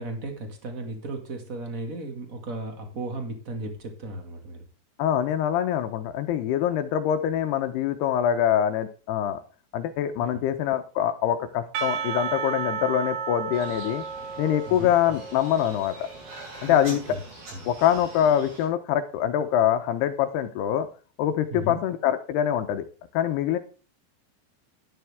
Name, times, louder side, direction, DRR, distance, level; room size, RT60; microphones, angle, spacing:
voice 1, 0.0-4.6 10.2-10.4 14.7-14.9 16.6-17.2 17.5-17.7 21.5-21.8, right 2 dB, 70° right, 4 dB, 0.7 m, -35 dB
voice 2, 5.0-9.4 9.7-14.0 14.4-16.1 16.6-17.0 17.7-20.9 21.2-22.9 23.1-23.6, left 10 dB, 75° left, 9 dB, 2.7 m, -24 dB
Percussion / Church bell, 11.7-17.0, right 6 dB, 90° right, 3.7 m, -33 dB
sound 1, 13.5-18.7, right 2 dB, 55° right, 8.4 m, -44 dB
12.0 x 10.5 x 3.5 m, 0.36 s
omnidirectional pair, 5.1 m